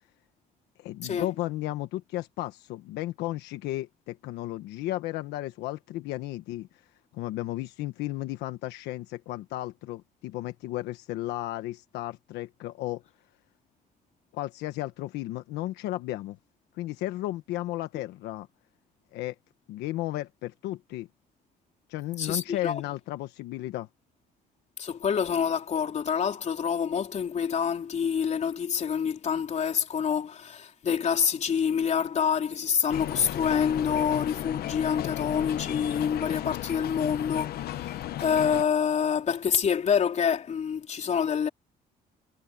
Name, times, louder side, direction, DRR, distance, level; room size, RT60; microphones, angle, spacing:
voice 1, 0.8-6.7 7.1-13.0 14.3-16.4 16.7-18.5 19.1-19.3 19.7-21.1 21.9-23.9, left 16 dB, 85° left, 1.3 m, -34 dB
voice 2, 22.2-22.8 24.8-41.5, left 7 dB, 45° left, 3.9 m, -27 dB
sound 1, 32.9-38.6, left 13 dB, 65° left, 1.1 m, -34 dB
cardioid pair, 110°, 17 cm